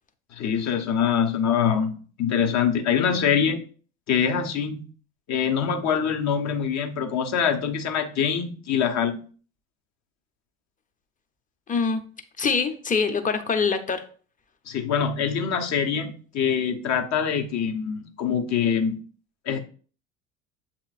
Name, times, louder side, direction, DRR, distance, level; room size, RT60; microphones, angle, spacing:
voice 1, 0.3-3.6 4.1-4.8 5.3-9.2 14.7-19.0 19.4-19.6, left 7 dB, 50° left, 4 dB, 0.9 m, -24 dB
voice 2, 11.7-12.0 12.4-14.1, left 5 dB, 20° left, 9 dB, 0.7 m, -24 dB
7.1 x 3.0 x 2.4 m, 0.41 s
hypercardioid pair, 75°, 36 cm